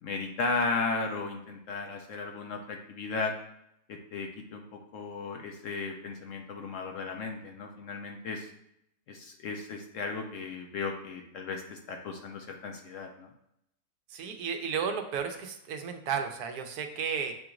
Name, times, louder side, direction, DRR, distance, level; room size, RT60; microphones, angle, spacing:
voice 1, 0.0-3.3 3.9-8.5 9.1-13.3, left 4 dB, 70° left, 3 dB, 0.8 m, -35 dB
voice 2, 14.1-17.3, right 6 dB, 80° right, 5 dB, 1.1 m, -33 dB
7.4 x 2.9 x 2.4 m, 0.78 s
omnidirectional pair, 1.6 m